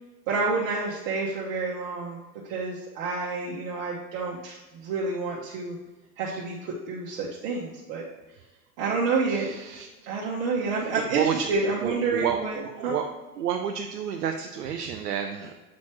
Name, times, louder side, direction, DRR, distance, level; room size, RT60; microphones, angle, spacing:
voice 1, 0.3-5.8 6.2-8.0 8.8-9.5 10.1-13.0, right 4 dB, 55° right, -5 dB, 1.1 m, -29 dB
voice 2, 11.1-11.5 11.8-12.4 12.9-13.0 13.4-15.5, right 8 dB, 75° right, 4 dB, 0.6 m, -29 dB
7.3 x 4.2 x 3.1 m, 1.2 s
figure-of-eight pair, 80°, 47 cm